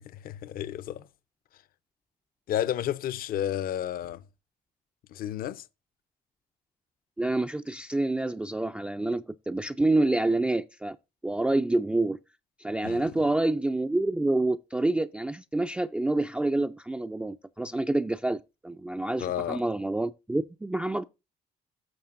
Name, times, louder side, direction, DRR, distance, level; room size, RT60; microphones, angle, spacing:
voice 1, 0.2-1.1 2.5-4.2 5.1-5.6 12.8-13.1 19.2-19.6, left 11 dB, 60° left, 0.6 m, -31 dB
voice 2, 7.2-11.0 11.2-12.2 12.6-21.0, right 2 dB, 5° right, 0.3 m, -27 dB
11.5 x 6.7 x 2.5 m
cardioid pair, 110°, 17 cm